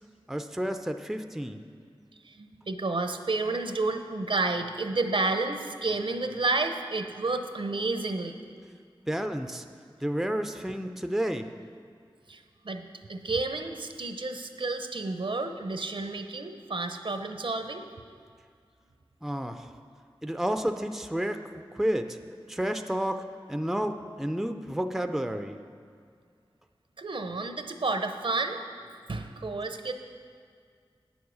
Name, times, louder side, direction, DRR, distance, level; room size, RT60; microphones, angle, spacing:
voice 1, 0.3-1.6 9.1-9.7 10.0-11.5 19.2-19.7 20.2-21.4 21.7-22.2 22.5-25.6, equal, 5° right, 7 dB, 0.4 m, -30 dB
voice 2, 2.3-8.3 12.3-17.8 27.0-28.6 29.1-29.9, right 3 dB, 65° right, 6 dB, 0.7 m, -31 dB
9.2 x 7.1 x 6.3 m, 2.2 s
wide cardioid pair, 65°, 9 cm